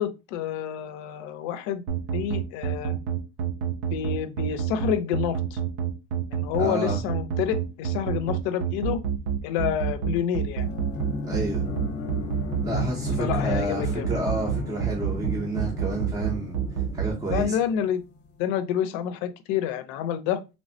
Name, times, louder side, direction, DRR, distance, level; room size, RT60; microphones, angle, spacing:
voice 1, 0.0-1.8 2.1-3.0 3.9-5.6 6.3-9.0 9.4-10.7 13.2-14.1 17.3-18.0 18.4-20.4, left 9 dB, 75° left, 0.5 m, -28 dB
sound 1, 1.9-17.4, right 9 dB, 75° right, 0.7 m, -27 dB
voice 2, 6.6-7.0 11.2-11.7 12.6-16.6 16.9-17.6, right 1 dB, 10° right, 0.5 m, -30 dB
sound 2, 10.6-18.2, left 4 dB, 35° left, 0.7 m, -35 dB
3.2 x 2.0 x 2.6 m
cardioid pair, 170°, 29 cm